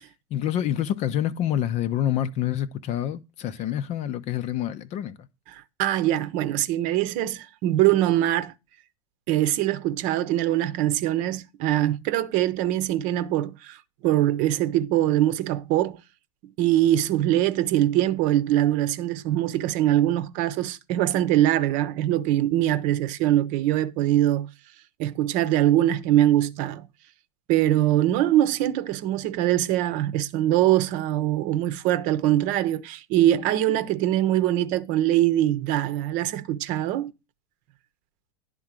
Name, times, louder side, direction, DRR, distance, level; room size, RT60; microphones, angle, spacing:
voice 1, 0.3-5.2, left 11 dB, 40° left, 0.7 m, -27 dB
voice 2, 5.5-8.5 9.3-13.8 14.0-16.0 16.6-24.5 25.0-26.9 27.5-37.1, right 13 dB, 50° right, 0.8 m, -23 dB
10.5 x 3.8 x 7.4 m
hypercardioid pair, 105°, 17 cm